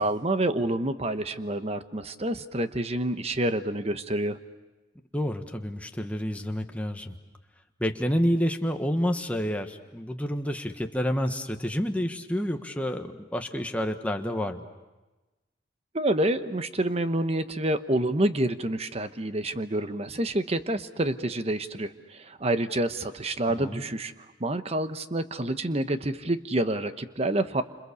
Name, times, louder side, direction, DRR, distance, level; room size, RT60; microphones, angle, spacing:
voice 1, 0.0-4.4 15.9-24.1 24.4-27.6, right 1 dB, 35° right, 10 dB, 1.0 m, -28 dB
voice 2, 5.1-7.1 7.8-14.6 23.6-23.8, equal, 10° left, 4 dB, 1.3 m, -29 dB
29.0 x 27.0 x 7.0 m, 1.1 s
head